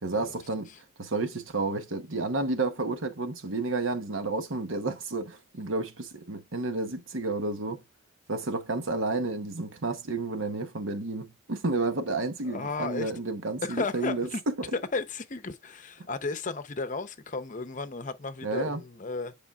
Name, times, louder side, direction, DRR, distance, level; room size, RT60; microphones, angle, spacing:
voice 1, 0.0-0.7 1.0-7.8 8.3-14.5 18.4-18.8, right 3 dB, 70° right, 1.0 m, -31 dB
voice 2, 12.4-13.1 13.6-14.4 14.7-19.3, left 3 dB, 35° left, 0.7 m, -34 dB
9.9 x 5.0 x 2.4 m
head